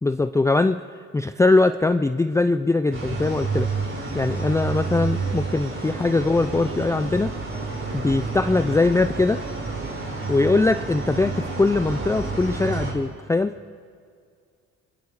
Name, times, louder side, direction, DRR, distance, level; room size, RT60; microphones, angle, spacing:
voice 1, 0.0-0.8 1.1-3.7 4.1-7.3 7.9-9.4 10.3-13.5, left 3 dB, 10° left, 10 dB, 0.4 m, -21 dB
sound 1, 2.9-12.9, right 4 dB, 45° right, 5.1 m, -29 dB
27.0 x 21.5 x 4.9 m, 2.2 s
cardioid pair, 90°, 30 cm